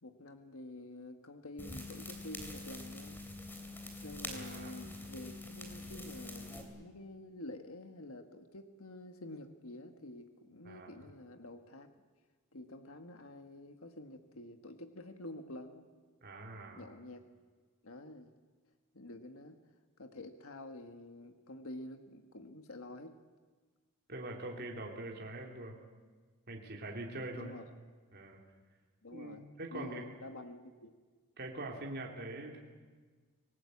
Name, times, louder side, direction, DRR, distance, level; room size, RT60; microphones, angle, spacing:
voice 1, 0.0-3.2 4.0-11.9 12.5-15.9 16.8-17.2 17.8-18.3 18.9-19.6 20.0-23.2 27.4-27.6 29.0-29.5 29.7-30.9, left 1 dB, 70° left, 6 dB, 1.6 m, -48 dB
sound 1, 1.6-6.6, left 2 dB, 10° left, 3.2 m, -45 dB
voice 2, 4.3-4.9 10.6-10.9 16.2-16.8 24.1-25.8 26.5-27.5 28.1-28.4 29.1-30.1 31.4-32.6, right 2 dB, 45° right, 0 dB, 3.3 m, -43 dB
26.5 x 19.0 x 8.4 m, 1.4 s
head